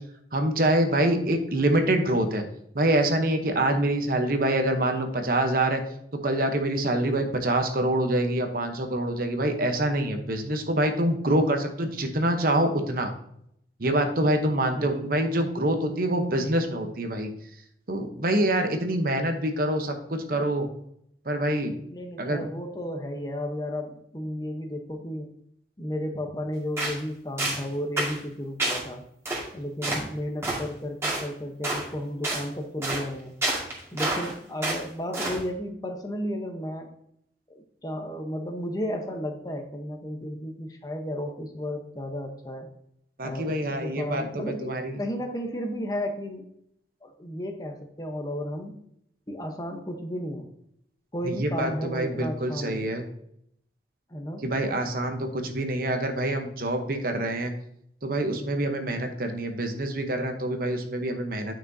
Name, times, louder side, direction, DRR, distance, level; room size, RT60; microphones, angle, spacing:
voice 1, 0.3-2.4 2.7-5.8 6.2-13.1 13.8-17.3 17.9-20.7 21.3-21.8 22.2-22.4 43.2-45.0 51.2-53.0 54.4-57.5 58.0-61.6, right 1 dB, 55° right, 5 dB, 0.9 m, -25 dB
voice 2, 14.7-15.1 20.3-20.5 21.8-25.3 25.8-29.0 29.5-33.3 33.9-36.9 37.5-42.7 43.2-46.4 47.0-48.8 49.3-50.5 51.1-52.9 54.1-54.4, equal, 20° left, 3 dB, 0.9 m, -33 dB
sound 1, 26.8-27.0 27.4-27.6 28.0-28.2 28.6-28.8 29.3-29.4 29.8-30.0 30.4-30.6 31.0-31.2 31.6-31.9 32.2-32.4 32.8-33.0 33.4-34.3 34.6-34.8 35.1-35.4, right 2 dB, 15° right, 2.1 m, -28 dB
9.6 x 5.9 x 2.7 m, 0.72 s
head